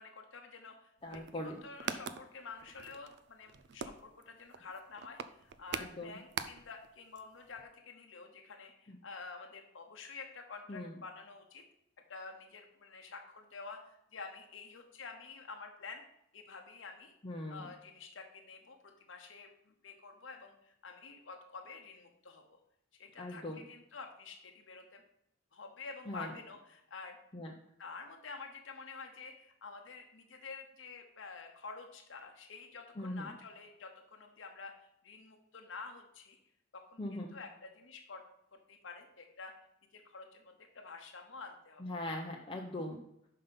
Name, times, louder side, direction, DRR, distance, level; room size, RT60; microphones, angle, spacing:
voice 1, 0.0-11.6 12.1-16.0 16.3-17.1 17.5-22.6 22.9-25.0 25.5-27.2 27.8-34.7 35.0-36.4 36.7-38.2 38.5-39.5 39.9-41.8, left 4 dB, 70° left, 3 dB, 0.9 m, -49 dB
voice 2, 1.0-1.6 5.8-6.2 8.9-9.0 10.7-10.9 17.2-17.7 23.2-23.6 26.1-26.3 27.3-27.5 33.0-33.3 37.0-37.3 41.8-43.0, left 1 dB, 25° left, -1 dB, 0.7 m, -40 dB
sound 1, 1.0-6.9 7.2-7.3 7.5-7.6, right 7 dB, 60° right, 0.4 m, -43 dB
5.7 x 5.6 x 5.2 m, 0.76 s
head